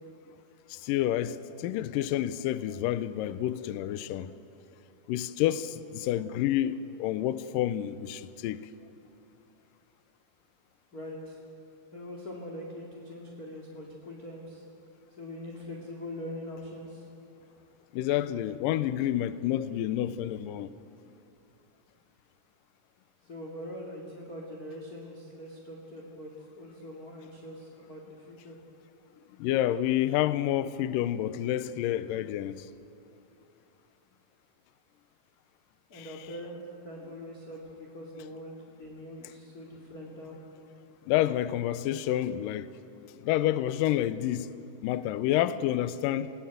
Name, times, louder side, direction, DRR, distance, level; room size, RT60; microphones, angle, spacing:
voice 1, 0.7-4.3 5.1-8.6 17.9-20.7 29.4-32.7 35.9-36.1 41.1-42.7 43.0-44.5 44.8-46.3, left 12 dB, 90° left, 1.9 m, -29 dB
voice 2, 10.9-11.4 11.9-14.6 15.2-17.0 17.4-17.6 23.2-26.3 26.6-28.6 35.9-40.4, left 1 dB, 30° left, 2.0 m, -42 dB
27.0 x 18.0 x 9.3 m
omnidirectional pair, 4.8 m